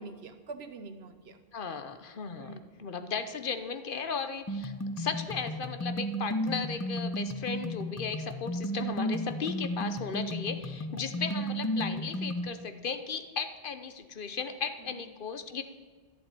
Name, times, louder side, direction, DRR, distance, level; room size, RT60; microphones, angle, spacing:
voice 1, 0.0-1.4 2.4-2.9 11.2-11.5 14.8-15.0, right 3 dB, 80° right, 9 dB, 1.2 m, -45 dB
voice 2, 1.5-15.6, left 5 dB, 60° left, 9 dB, 1.0 m, -36 dB
sound 1, 4.5-12.5, equal, 15° left, 0.7 m, -34 dB
11.5 x 7.7 x 9.0 m, 1.4 s
omnidirectional pair, 1.0 m